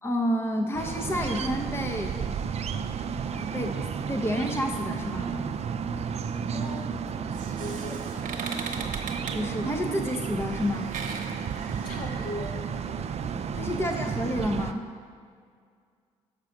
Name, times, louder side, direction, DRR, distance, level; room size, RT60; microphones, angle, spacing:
voice 1, 0.0-2.3 3.3-5.3 9.3-10.9 13.5-14.8, equal, 15° left, 3 dB, 0.8 m, -29 dB
sound 1, 0.7-14.7, right 6 dB, 45° right, 0.4 m, -32 dB
voice 2, 6.5-6.9 7.6-8.0 11.8-12.6, left 1 dB, 65° left, -2 dB, 1.8 m, -37 dB
sound 2, 7.1-12.7, right 5 dB, 60° right, 1.0 m, -40 dB
7.4 x 4.8 x 6.2 m, 2.1 s
hypercardioid pair, 50°, 15 cm